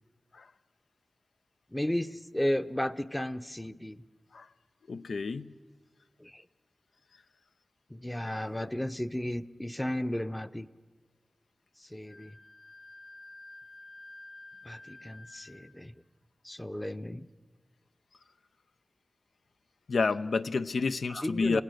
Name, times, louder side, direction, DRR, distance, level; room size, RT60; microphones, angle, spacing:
voice 1, 1.7-4.0 6.2-6.4 7.9-10.7 11.9-12.3 14.7-15.9 16.4-17.3 21.1-21.6, left 1 dB, 15° left, 12 dB, 0.7 m, -34 dB
voice 2, 4.9-5.5 19.9-21.6, left 4 dB, 80° left, 11 dB, 0.7 m, -29 dB
Wind instrument woodwind instrument, 12.1-15.8, left 2 dB, 45° left, 3.1 m, -50 dB
27.5 x 17.0 x 6.6 m, 1.5 s
wide cardioid pair, 70°, 0 cm